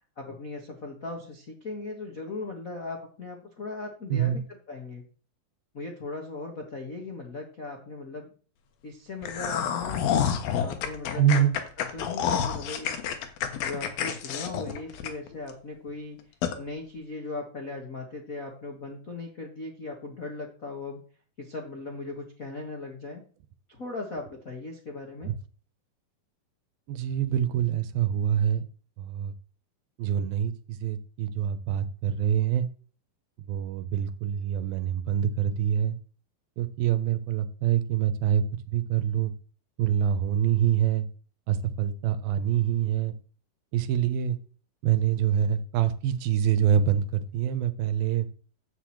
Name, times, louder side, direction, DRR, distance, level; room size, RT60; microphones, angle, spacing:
voice 1, 0.2-4.4 4.7-5.0 5.7-8.3 8.8-11.4 11.9-13.0 13.6-16.2 16.6-21.0 21.4-23.2 23.7-25.3, left 3 dB, 45° left, 1 dB, 1.1 m, -38 dB
sound 1, 9.2-15.5 15.9-16.0 16.4-16.6, left 8 dB, 75° left, 3.0 m, -29 dB
voice 2, 11.2-11.5 25.3-25.4 26.9-28.7 29.0-29.3 30.0-32.7 33.5-36.0 36.6-39.3 39.8-41.1 41.5-43.1 43.7-44.4 44.8-48.3, right 9 dB, 80° right, 12 dB, 2.7 m, -25 dB
10.5 x 5.4 x 7.7 m, 0.41 s
omnidirectional pair, 4.3 m